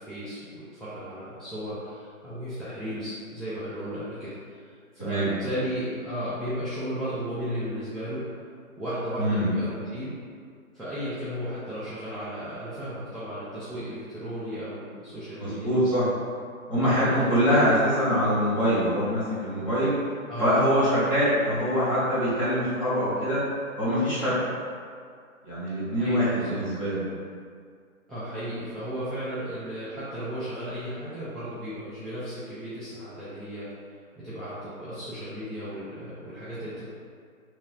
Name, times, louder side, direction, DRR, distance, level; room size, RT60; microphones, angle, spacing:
voice 1, 0.0-4.6 4.9-8.2 8.8-10.1 10.7-16.0 16.7-17.2 17.5-17.8 20.3-20.6 26.0-26.6 28.1-33.7 34.2-36.9, equal, ahead, -14 dB, 0.3 m, -34 dB
voice 2, 5.0-5.3 9.2-9.5 15.4-16.1 16.7-19.9 20.4-23.4 23.8-24.4 25.4-27.0, equal, 25° left, -12 dB, 0.8 m, -24 dB
3.0 x 2.4 x 3.8 m, 2.2 s
hypercardioid pair, 170°, 43 cm